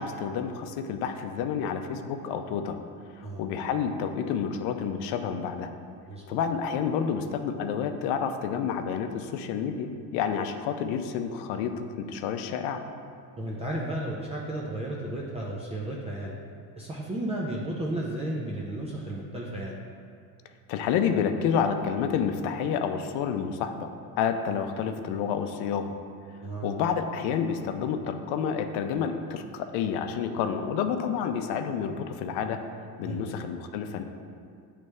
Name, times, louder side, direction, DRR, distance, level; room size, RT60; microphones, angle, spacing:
voice 1, 0.0-2.8 3.2-5.7 6.3-12.8 20.7-23.9 24.2-25.9 26.6-32.7 33.0-34.0, left 7 dB, 70° left, 7 dB, 0.6 m, -29 dB
voice 2, 6.1-6.4 13.4-16.4 16.8-19.7 26.4-26.8 33.0-33.5, right 1 dB, 15° right, -4 dB, 0.5 m, -33 dB
9.2 x 3.3 x 3.2 m, 2.3 s
cardioid pair, 125°, 41 cm